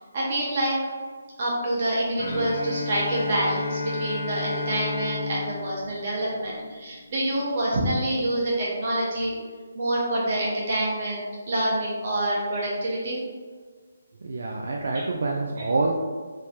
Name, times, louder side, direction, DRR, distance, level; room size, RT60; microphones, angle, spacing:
voice 1, 0.1-0.7 1.4-9.3 9.7-13.2, right 1 dB, 35° right, -5 dB, 1.0 m, -27 dB
Bowed string instrument, 2.2-7.0, left 3 dB, 65° left, 0.7 m, -32 dB
voice 2, 14.2-16.0, right 3 dB, 65° right, 0 dB, 0.3 m, -26 dB
3.5 x 3.1 x 2.7 m, 1.5 s
hypercardioid pair, 175°, 0 cm